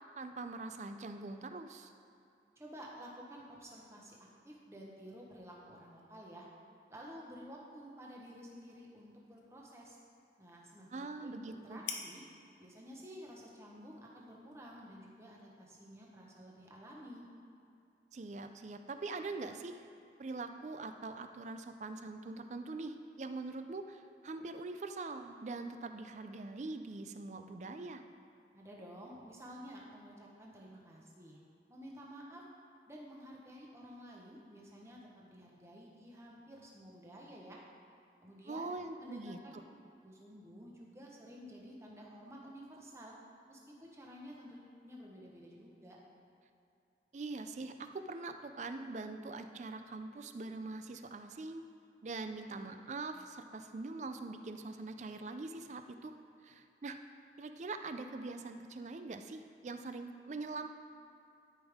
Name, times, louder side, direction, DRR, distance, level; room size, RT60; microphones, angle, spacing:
voice 1, 0.2-1.9 10.9-11.8 18.1-19.8 20.2-28.0 38.5-39.4 47.1-51.6 52.0-56.1 56.4-57.0 57.4-60.7, right 3 dB, 40° right, 8 dB, 0.4 m, -43 dB
voice 2, 2.6-4.2 4.4-6.5 6.9-10.0 10.4-12.2 12.6-17.3 28.5-31.4 31.7-32.4 32.9-37.6 38.2-38.7 39.0-39.5 40.0-43.1 43.5-46.0, equal, 15° right, -3 dB, 1.0 m, -52 dB
sound 1, 7.5-15.3, left 6 dB, 75° left, 0.8 m, -53 dB
12.5 x 5.3 x 3.5 m, 2.6 s
head